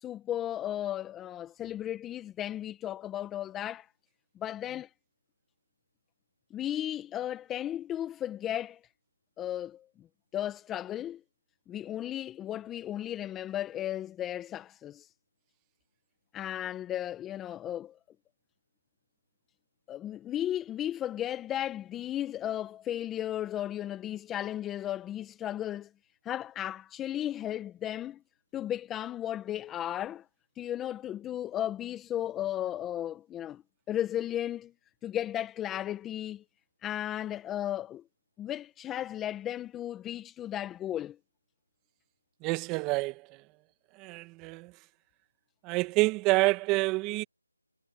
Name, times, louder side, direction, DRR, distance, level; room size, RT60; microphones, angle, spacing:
voice 1, 0.0-3.9 4.4-4.9 6.5-8.8 9.4-9.8 10.3-11.2 11.7-15.1 16.3-18.0 19.9-25.9 26.2-28.2 28.5-30.2 30.6-33.6 33.9-34.7 35.0-36.4 36.8-38.0 38.4-41.2, left 11 dB, 10° left, 1.7 m, -35 dB
voice 2, 42.4-43.2 44.0-44.7 45.6-47.2, right 23 dB, 10° right, 2.2 m, -27 dB
figure-of-eight pair, 165°, 0 cm